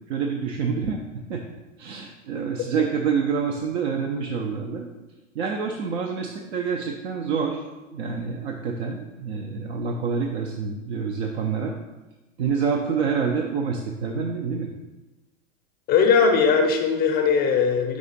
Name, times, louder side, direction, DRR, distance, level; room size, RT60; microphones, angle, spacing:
voice 1, 0.1-1.4 1.8-4.9 5.3-7.6 7.9-11.8 12.4-14.7, right 6 dB, 55° right, 2 dB, 0.6 m, -27 dB
voice 2, 15.9-18.0, left 5 dB, 25° left, 3 dB, 0.6 m, -19 dB
4.9 x 4.8 x 4.0 m, 1.1 s
figure-of-eight pair, 100°, 40 cm